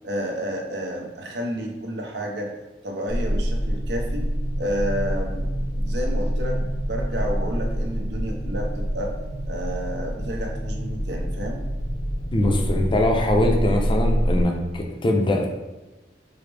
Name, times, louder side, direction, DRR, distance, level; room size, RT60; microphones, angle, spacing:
voice 1, 0.0-2.5 2.8-4.2 4.6-9.1 9.5-11.6, equal, 65° right, 1 dB, 0.7 m, -30 dB
sound 1, 3.1-14.4, equal, 85° left, 0.7 m, -26 dB
voice 2, 12.3-15.5, left 1 dB, 30° left, 2 dB, 0.5 m, -22 dB
4.8 x 2.0 x 3.3 m, 1.1 s
head